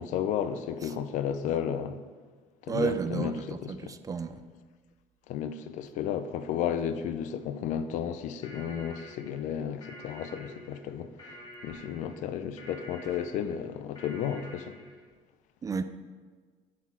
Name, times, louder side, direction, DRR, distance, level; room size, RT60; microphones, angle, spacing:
voice 1, 0.0-2.0 2.6-3.9 5.3-11.4 11.6-14.8, left 8 dB, 70° left, 0.5 m, -33 dB
voice 2, 2.7-4.4 15.6-15.8, right 5 dB, 25° right, 0.4 m, -32 dB
sound 1, 8.4-15.0, left 1 dB, 35° left, 1.5 m, -48 dB
8.4 x 4.1 x 4.5 m
cardioid pair, 100°, 13 cm